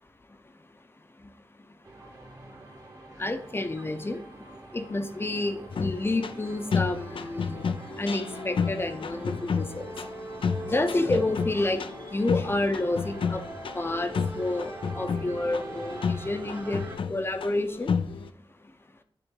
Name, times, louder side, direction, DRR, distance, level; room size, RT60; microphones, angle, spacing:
sound 1, 1.8-17.0, right 2 dB, 35° right, 1.2 m, -43 dB
voice 1, 3.2-4.2 4.7-7.6 8.0-9.9 10.7-11.8 12.1-13.4 13.7-16.8 17.1-17.9, left 2 dB, 25° left, 8 dB, 0.7 m, -29 dB
sound 2, 5.7-18.3, left 5 dB, 65° left, 0.4 m, -32 dB
9.9 x 3.7 x 3.7 m, 0.65 s
wide cardioid pair, 145°, 9 cm